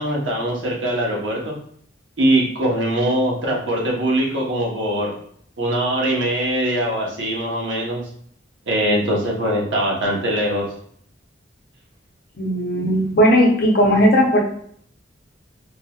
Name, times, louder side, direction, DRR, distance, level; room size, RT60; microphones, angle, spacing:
voice 1, 0.0-1.5 2.2-5.1 5.6-8.0 8.7-10.7, right 1 dB, 90° right, -3 dB, 1.0 m, -22 dB
voice 2, 12.4-14.4, equal, 55° left, 1 dB, 0.7 m, -16 dB
3.7 x 2.9 x 2.3 m, 0.63 s
head